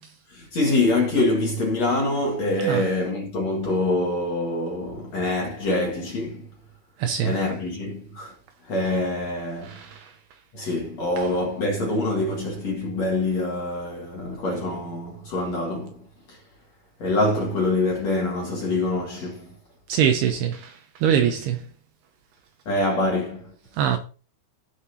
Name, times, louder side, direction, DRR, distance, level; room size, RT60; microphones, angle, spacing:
voice 1, 0.3-6.5 7.2-8.4 8.6-9.9 10.5-16.4 17.0-19.5 22.7-23.6, left 2 dB, 50° left, 2.2 m, -25 dB
voice 2, 7.0-7.4 9.9-10.0 19.9-20.7 21.0-21.6 23.8-24.0, right 9 dB, 80° right, 2.5 m, -22 dB
17.0 x 6.6 x 2.8 m
omnidirectional pair, 5.3 m